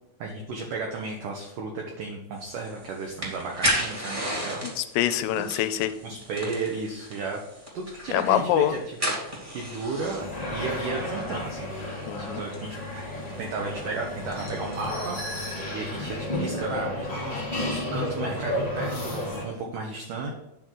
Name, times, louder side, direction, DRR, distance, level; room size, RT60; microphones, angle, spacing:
voice 1, 0.2-4.7 5.4-5.6 6.0-7.4 7.7-13.1 13.4-20.3, right 3 dB, 80° right, 1 dB, 1.8 m, -34 dB
sound 1, 2.4-14.9, equal, 20° right, 1.2 m, -35 dB
voice 2, 4.6-5.9 8.1-8.7 12.1-12.4, left 12 dB, 85° left, 10 dB, 2.8 m, -25 dB
sound 2, 10.2-19.4, left 1 dB, 45° left, 0.4 m, -32 dB
9.6 x 3.8 x 6.2 m, 0.87 s
omnidirectional pair, 5.0 m